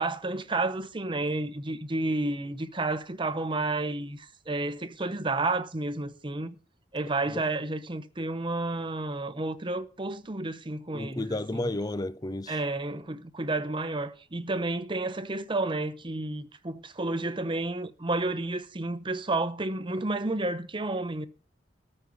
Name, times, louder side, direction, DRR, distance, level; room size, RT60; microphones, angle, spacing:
voice 1, 0.0-6.5 6.9-11.7 12.5-21.3, right 2 dB, 25° right, 0.9 m, -31 dB
voice 2, 10.9-12.5, left 2 dB, 20° left, 0.5 m, -32 dB
13.5 x 5.4 x 9.2 m
head